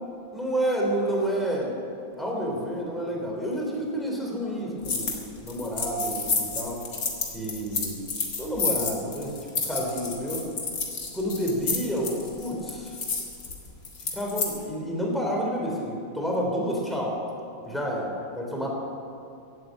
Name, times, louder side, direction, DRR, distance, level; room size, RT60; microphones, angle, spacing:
voice 1, 0.3-1.7 2.2-6.8 7.3-8.0 8.4-9.3 9.6-10.4 11.1-12.9 14.1-17.2 17.6-18.7, equal, ahead, -2 dB, 3.1 m, -29 dB
sound 1, 4.8-5.2 5.5-14.5, left 4 dB, 60° left, 2.5 m, -30 dB
15.5 x 9.3 x 8.6 m, 2.5 s
omnidirectional pair, 2.2 m